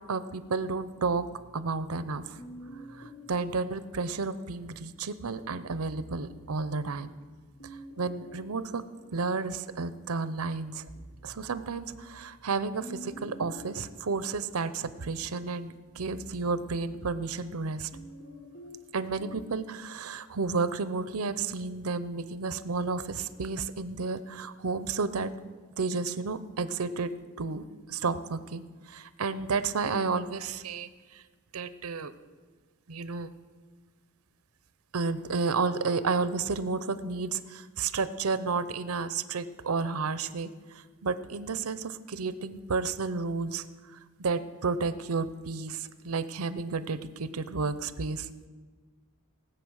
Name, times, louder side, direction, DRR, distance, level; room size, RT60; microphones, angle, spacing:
voice 1, 0.1-1.2 1.5-2.2 3.3-7.1 8.0-8.8 9.1-10.8 11.2-17.9 18.9-25.3 25.8-27.1 27.4-30.9 31.5-32.1 32.9-33.3 34.9-40.5 41.0-43.6 44.2-48.3, right 4 dB, 85° right, 13 dB, 0.7 m, -31 dB
sound 1, 1.0-4.5 5.5-9.9 10.4-19.6, equal, 80° left, 1.6 m, -50 dB
18.5 x 8.1 x 6.4 m, 1.4 s
head